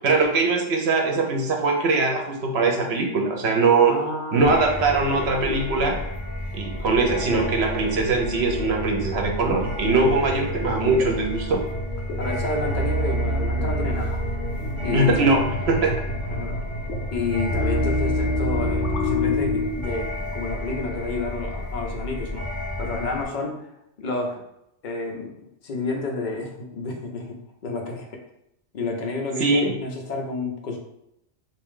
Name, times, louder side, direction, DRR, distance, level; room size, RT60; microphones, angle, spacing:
voice 1, 0.0-4.0 4.3-6.0 6.5-11.6 14.9-16.0 29.4-29.8, right 3 dB, 65° right, 2 dB, 0.9 m, -21 dB
voice 2, 3.8-4.6 12.2-14.2 14.8-15.4 16.0-16.6 17.1-22.5 22.8-23.7 24.0-24.4 24.8-28.2 28.7-30.8, left 3 dB, 50° left, 1 dB, 0.7 m, -30 dB
sound 1, 4.4-23.3, left 1 dB, 40° right, 1.4 m, -32 dB
sound 2, 5.5-19.7, left 1 dB, 80° left, 1.0 m, -29 dB
3.5 x 2.6 x 3.6 m, 0.80 s
omnidirectional pair, 1.2 m